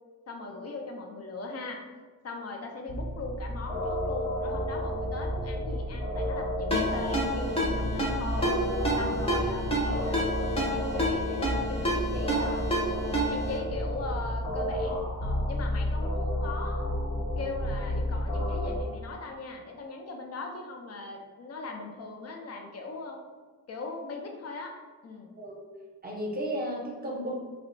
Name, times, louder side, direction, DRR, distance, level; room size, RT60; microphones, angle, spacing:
voice 1, 0.3-1.8 2.2-8.5 8.9-10.2 10.5-12.7 13.3-16.9 17.4-23.2 23.7-24.8 25.0-25.3, left 3 dB, 45° left, 2 dB, 0.5 m, -39 dB
sound 1, 2.9-18.8, equal, 75° left, 1.1 m, -31 dB
Ringtone, 6.7-13.6, equal, 15° left, 0.8 m, -30 dB
voice 2, 25.4-25.7 26.0-27.3, equal, 25° right, -3 dB, 0.7 m, -34 dB
2.7 x 2.1 x 2.6 m, 1.4 s
cardioid pair, 75°, 35 cm